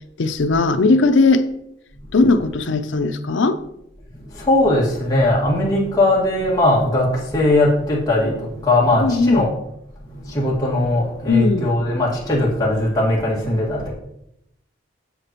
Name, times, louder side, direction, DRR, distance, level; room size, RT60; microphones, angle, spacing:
voice 1, 0.2-1.5 2.1-3.6 9.0-9.4 11.3-11.7, left 3 dB, 75° left, 0.5 m, -17 dB
voice 2, 4.2-9.5 10.1-13.9, left 1 dB, 20° left, 1.9 m, -19 dB
8.0 x 6.8 x 3.0 m
head